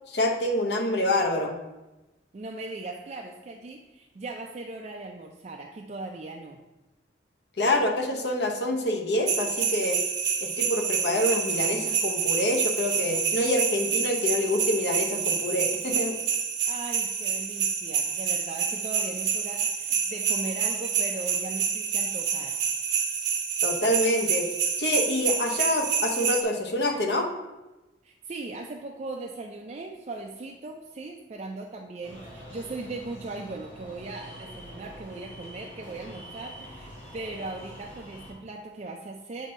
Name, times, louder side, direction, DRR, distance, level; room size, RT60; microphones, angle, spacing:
voice 1, 0.1-1.5 7.6-10.0 10.4-16.2 23.6-24.5 24.8-27.3, left 1 dB, 65° left, 3 dB, 0.8 m, -26 dB
voice 2, 2.3-6.6 16.7-22.6 28.0-39.5, right 2 dB, 35° right, 1 dB, 0.4 m, -38 dB
sound 1, 9.3-26.4, right 7 dB, 70° right, 0.8 m, -28 dB
sound 2, 32.0-38.3, equal, 35° left, 1.6 m, -45 dB
7.3 x 2.7 x 5.2 m, 1.1 s
head